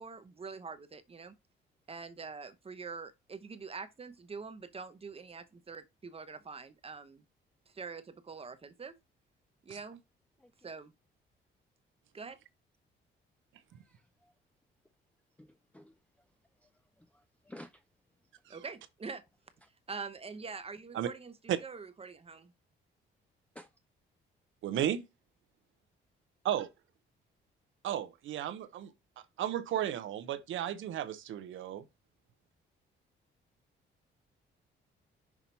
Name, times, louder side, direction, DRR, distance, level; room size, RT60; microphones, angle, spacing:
voice 1, 0.0-1.3 1.9-7.2 7.7-8.9 9.6-10.0 10.6-10.9 12.1-12.4 18.5-19.2 19.9-22.5, right 4 dB, 30° right, 0.8 m, -44 dB
voice 2, 13.7-14.3 15.4-16.0 16.6-16.7 17.0-17.8 19.6-19.7 23.5-23.7, left 1 dB, 5° left, 0.5 m, -54 dB
voice 3, 24.6-25.0 26.4-26.7 27.8-28.9 29.4-31.8, right 11 dB, 75° right, 0.9 m, -34 dB
6.0 x 2.9 x 5.4 m
cardioid pair, 90°, 20 cm